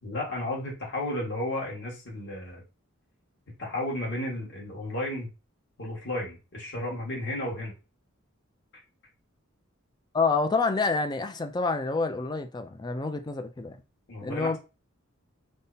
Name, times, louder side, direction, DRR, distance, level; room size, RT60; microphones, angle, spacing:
voice 1, 0.0-2.6 3.5-5.3 5.8-7.7 8.7-8.8 14.1-14.6, left 1 dB, 55° left, 1.6 m, -33 dB
voice 2, 10.1-13.8 14.2-14.6, left 4 dB, 20° left, 0.4 m, -27 dB
5.2 x 2.1 x 2.7 m
head